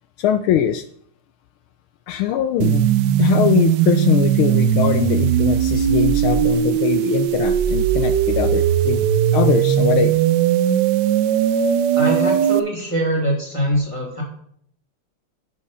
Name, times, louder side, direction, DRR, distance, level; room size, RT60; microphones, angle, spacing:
voice 1, 0.2-0.8 2.1-2.9 3.2-9.1 9.3-10.2, left 11 dB, 80° left, 10 dB, 1.4 m, -21 dB
sound 1, 2.6-12.6, right 10 dB, 75° right, 1.0 m, -18 dB
voice 2, 11.9-14.2, equal, 15° right, -1 dB, 2.5 m, -23 dB
10.0 x 6.3 x 5.6 m, 0.66 s
omnidirectional pair, 2.4 m